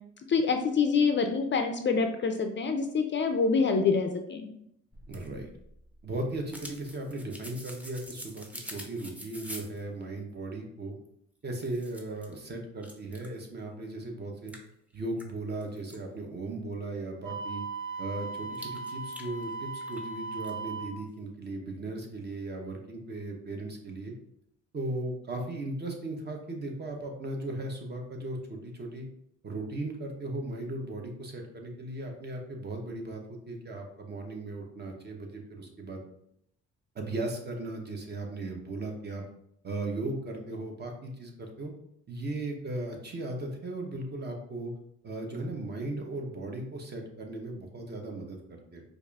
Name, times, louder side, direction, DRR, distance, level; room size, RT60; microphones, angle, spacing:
voice 1, 0.3-4.5, left 5 dB, 40° left, 5 dB, 0.4 m, -26 dB
sound 1, 4.9-9.8 11.0-11.1 11.5-12.3 12.8-13.4 13.8-13.9 14.5-16.0 18.5-20.1 20.4-20.5, equal, 5° right, 0.6 m, -46 dB
voice 2, 5.1-5.5 6.0-10.9 11.4-14.5 14.9-17.6 18.0-24.1 24.7-29.1 29.4-36.0 36.9-39.2 39.6-41.7 42.1-44.7 45.0-48.8, right 2 dB, 35° right, 2 dB, 0.8 m, -37 dB
Wind instrument woodwind instrument, 17.2-21.0, right 4 dB, 85° right, 1.0 m, -38 dB
4.7 x 2.5 x 2.3 m, 0.74 s
cardioid pair, 90°, 30 cm